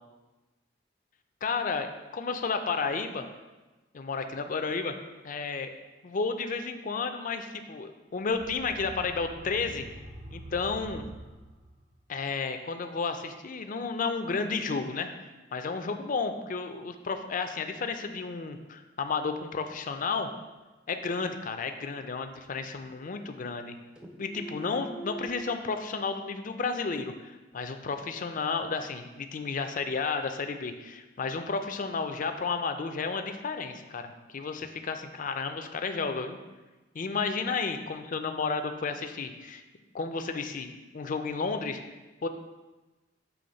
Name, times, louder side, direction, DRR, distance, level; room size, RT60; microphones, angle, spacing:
voice 1, 1.4-3.3 3.9-4.9 5.2-5.7 6.0-9.8 10.3-11.1 12.1-20.3 20.9-23.8 24.2-36.4 36.9-39.6 39.9-41.8 42.2-42.3, left 4 dB, 45° left, 7 dB, 0.5 m, -32 dB
sound 1, 8.2-12.0, right 1 dB, 65° right, 0.9 m, -46 dB
sound 2, 21.5-22.5 22.8-23.7 24.0-25.6, right 2 dB, 5° right, 0.5 m, -45 dB
7.0 x 3.1 x 5.2 m, 1.2 s
head